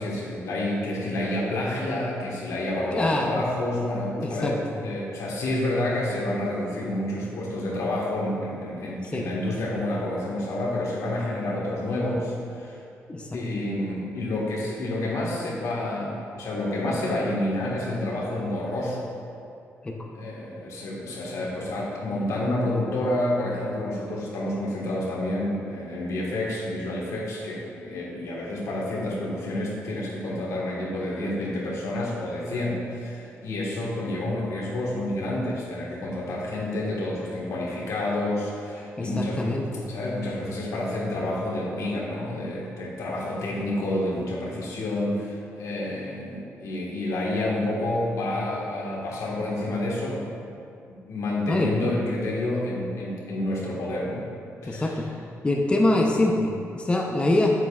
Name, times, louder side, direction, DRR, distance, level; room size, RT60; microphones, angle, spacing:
voice 1, 0.0-12.8 13.3-19.1 20.1-50.2 50.9-54.3 54.6-55.0, left 1 dB, 80° left, -4 dB, 1.5 m, -29 dB
voice 2, 2.9-3.3 4.2-4.5 9.1-9.2 13.1-13.3 19.8-19.9 39.0-40.0 51.5-51.8 54.7-55.0 55.4-57.6, left 2 dB, 20° left, -1 dB, 0.7 m, -24 dB
7.9 x 7.4 x 2.4 m, 2.4 s
cardioid pair, 100°, 5 cm